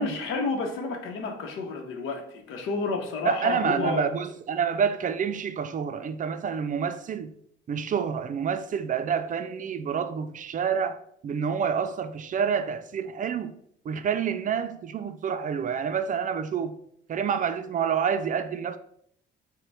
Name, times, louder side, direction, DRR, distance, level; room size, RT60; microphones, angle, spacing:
voice 1, 0.0-4.1, left 4 dB, 90° left, 0.8 m, -30 dB
voice 2, 3.2-7.3 7.7-13.6 13.9-16.8 17.1-18.8, right 7 dB, 40° right, 0.4 m, -28 dB
6.4 x 2.2 x 3.4 m
cardioid pair, 90°, 20 cm